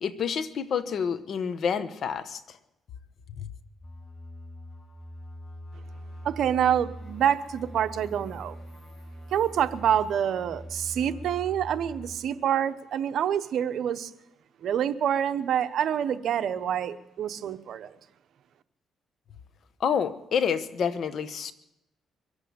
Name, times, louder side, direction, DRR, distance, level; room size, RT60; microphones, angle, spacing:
voice 1, 0.0-2.4 19.8-21.5, left 7 dB, 60° left, 1.1 m, -28 dB
sound 1, 3.8-12.2, equal, 40° left, 4.9 m, -43 dB
voice 2, 6.2-8.6 9.3-14.1 14.6-17.9, right 9 dB, 70° right, 0.8 m, -27 dB
23.5 x 8.2 x 6.9 m
cardioid pair, 90°, 0 cm